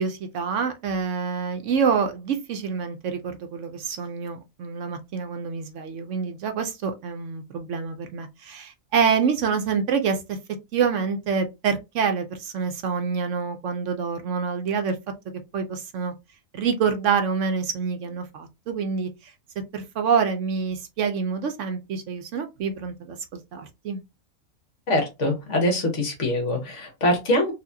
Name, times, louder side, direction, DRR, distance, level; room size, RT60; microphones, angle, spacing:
voice 1, 0.0-10.4 10.7-15.0 15.5-16.1 16.5-19.1 19.7-23.2 23.5-24.0, right 6 dB, 65° right, 0.9 m, -26 dB
voice 2, 24.9-27.5, left 1 dB, 60° left, 1.5 m, -23 dB
4.1 x 2.5 x 2.6 m
omnidirectional pair, 1.5 m